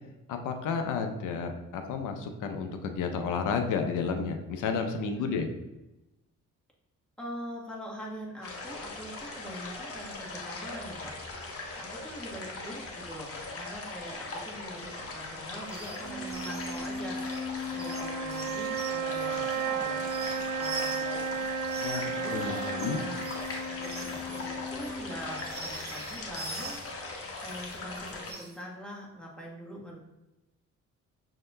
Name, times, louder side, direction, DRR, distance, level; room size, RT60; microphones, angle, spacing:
voice 1, 0.3-5.5 21.8-22.0 22.3-23.0, left 5 dB, 75° left, 5 dB, 0.6 m, -31 dB
voice 2, 5.2-5.6 7.2-11.1 11.8-21.4 22.0-23.2 23.7-26.8 27.4-30.0, equal, 5° left, -4 dB, 1.3 m, -43 dB
sound 1, 8.4-28.3, left 3 dB, 45° left, 1.0 m, -40 dB
sound 2, 15.6-16.0 16.3-21.2 21.6-26.9 27.3-28.6, right 3 dB, 30° right, 0.8 m, -44 dB
sound 3, 16.0-25.4, right 4 dB, 65° right, 0.7 m, -34 dB
6.2 x 2.8 x 2.2 m, 0.97 s
cardioid pair, 75°, 31 cm